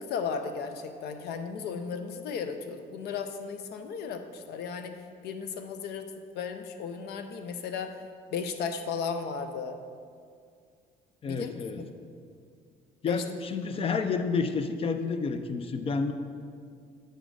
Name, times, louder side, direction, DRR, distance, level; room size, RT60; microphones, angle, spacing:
voice 1, 0.0-4.9 5.2-6.1 6.3-8.0 8.3-9.8 11.2-11.9 13.0-13.2, left 6 dB, 75° left, 8 dB, 0.6 m, -35 dB
voice 2, 11.2-11.8 13.0-16.1, left 4 dB, 35° left, 8 dB, 0.5 m, -30 dB
7.9 x 4.0 x 4.7 m, 2.2 s
cardioid pair, 110°, 17 cm